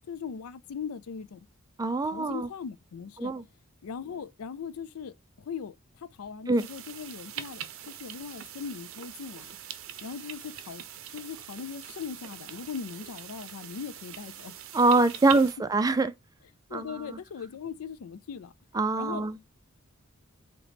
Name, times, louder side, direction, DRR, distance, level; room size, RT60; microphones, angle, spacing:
voice 1, 0.1-1.4 2.1-3.3 3.8-5.7 6.2-9.6 10.0-10.8 11.1-14.5 16.7-18.5 19.0-19.3, left 6 dB, 85° left, 0.4 m, -39 dB
voice 2, 1.8-2.5 3.2-3.4 6.5-6.6 14.7-16.1 16.7-17.2 18.7-19.4, right 3 dB, 15° right, 0.3 m, -24 dB
sound 1, 6.6-15.5, right 10 dB, 65° right, 0.6 m, -43 dB
4.0 x 2.9 x 3.3 m
head